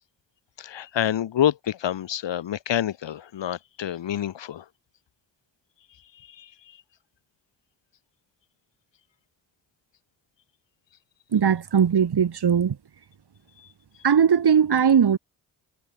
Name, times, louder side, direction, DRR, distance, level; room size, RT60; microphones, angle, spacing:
voice 1, 0.6-4.6 6.4-6.5, left 10 dB, 60° left, 2.1 m, -27 dB
voice 2, 11.3-12.8 14.0-15.2, right 7 dB, 50° right, 3.4 m, -19 dB
hypercardioid pair, 40°, 49 cm